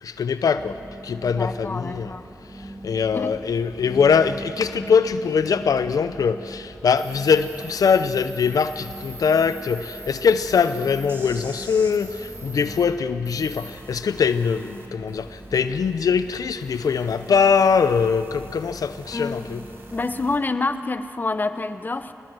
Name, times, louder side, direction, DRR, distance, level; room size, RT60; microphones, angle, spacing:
voice 1, 0.0-0.8 1.0-2.1 2.5-19.6, left 6 dB, 80° left, 11 dB, 0.6 m, -22 dB
sound 1, 0.6-20.4, right 1 dB, 20° right, 1.7 m, -41 dB
voice 2, 1.2-2.3 3.1-3.3 19.1-19.5 19.9-22.1, left 3 dB, 30° left, 10 dB, 0.9 m, -27 dB
sound 2, 7.0-12.8 13.3-20.4, right 2 dB, 40° right, 2.9 m, -44 dB
22.5 x 20.0 x 7.8 m, 2.9 s
wide cardioid pair, 90°, 6 cm